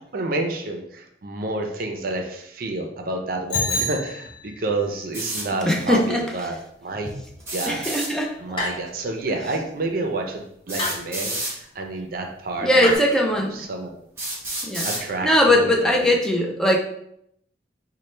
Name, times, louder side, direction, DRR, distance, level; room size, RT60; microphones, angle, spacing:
voice 1, 0.1-6.5 6.8-7.1 7.5-7.8 8.4-12.9 13.3-13.9 14.8-16.1, right 2 dB, 55° right, 3 dB, 0.5 m, -29 dB
Bicycle bell, 3.5-4.8, left 1 dB, 75° left, 1.0 m, -28 dB
sound 1, 5.1-5.5 7.4-8.1 9.5-9.6 10.7-11.5 12.5-12.6 13.3-13.4 14.2-15.0, right 1 dB, 15° right, 1.0 m, -29 dB
voice 2, 5.7-6.2 7.7-8.3 12.6-13.5 14.6-14.9 15.2-16.8, left 1 dB, 5° left, 0 dB, 0.5 m, -20 dB
sound 2, 8.6-9.1 10.8-11.1 12.8-13.0, left 2 dB, 30° left, 0.8 m, -28 dB
4.2 x 2.2 x 3.2 m, 0.74 s
head